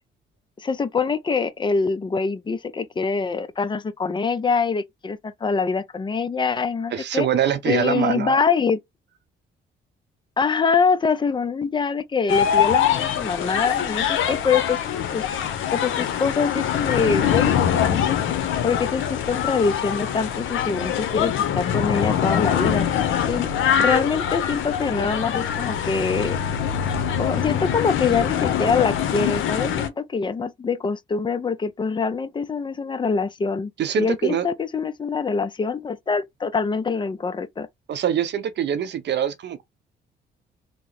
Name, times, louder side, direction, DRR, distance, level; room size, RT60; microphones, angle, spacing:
voice 1, 0.6-7.3 7.7-8.8 10.4-15.2 15.7-18.2 18.6-23.5 23.8-26.4 27.2-33.7 34.0-37.7, left 5 dB, 25° left, 0.5 m, -24 dB
voice 2, 6.9-8.4 33.8-34.5 37.9-39.6, right 9 dB, 60° right, 0.7 m, -24 dB
sound 1, 12.3-29.9, left 9 dB, 80° left, 0.7 m, -23 dB
2.9 x 2.1 x 3.9 m
cardioid pair, 90°, 20 cm